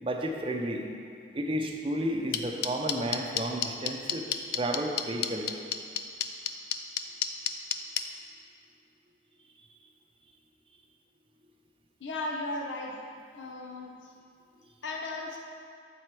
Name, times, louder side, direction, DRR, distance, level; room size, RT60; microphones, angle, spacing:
voice 1, 0.0-0.8 1.3-4.2 4.5-5.5, right 1 dB, 30° right, 2 dB, 0.6 m, -32 dB
sound 1, 2.3-8.0, left 10 dB, 55° left, 0.4 m, -28 dB
voice 2, 12.0-13.0 13.3-14.1 14.8-15.4, left 2 dB, 85° left, 0 dB, 0.8 m, -36 dB
7.7 x 4.5 x 4.7 m, 2.3 s
head